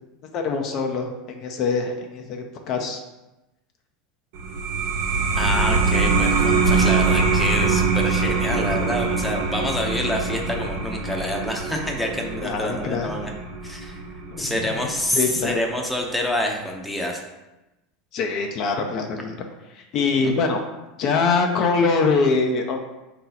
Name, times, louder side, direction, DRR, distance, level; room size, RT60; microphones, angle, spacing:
voice 1, 0.3-3.0 12.4-13.2 14.3-14.8 15.1-15.6 18.1-19.4 19.7-20.6 21.0-22.8, left 4 dB, 50° left, 3 dB, 0.6 m, -23 dB
sound 1, 4.3-15.5, right 4 dB, 75° right, 1.0 m, -23 dB
voice 2, 5.4-13.3 13.6-14.0 14.4-17.2, left 1 dB, 5° left, 0 dB, 0.7 m, -27 dB
4.5 x 2.9 x 3.9 m, 1.0 s
supercardioid pair, 110°, 0 cm